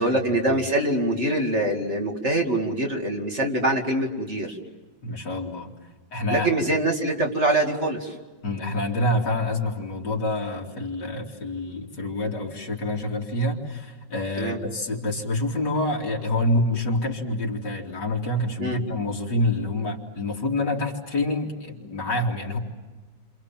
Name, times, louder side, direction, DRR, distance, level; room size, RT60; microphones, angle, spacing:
voice 1, 0.0-4.6 6.3-8.1 14.4-14.6 18.6-18.8, right 1 dB, 35° right, 1 dB, 2.7 m, -24 dB
voice 2, 5.0-5.7 6.1-6.5 8.4-22.6, left 1 dB, 65° left, 0 dB, 3.4 m, -27 dB
29.5 x 27.0 x 7.5 m, 1.3 s
omnidirectional pair, 2.0 m